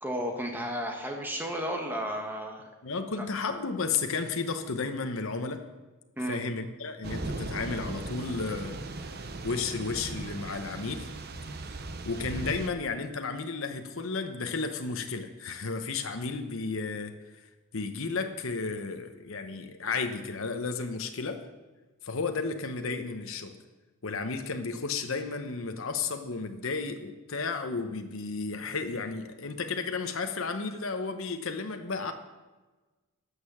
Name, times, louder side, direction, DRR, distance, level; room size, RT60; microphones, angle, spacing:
voice 1, 0.0-2.7 3.1-3.3 6.2-6.4, equal, 10° right, 2 dB, 1.4 m, -33 dB
voice 2, 2.8-5.6 6.3-8.8 9.4-11.1 12.0-17.5 17.7-21.4 22.0-23.6 24.0-32.1, left 4 dB, 65° left, 6 dB, 0.9 m, -33 dB
Thunder / Rain, 7.0-12.7, right 2 dB, 45° right, 0.8 m, -38 dB
12.0 x 6.7 x 7.2 m, 1.2 s
head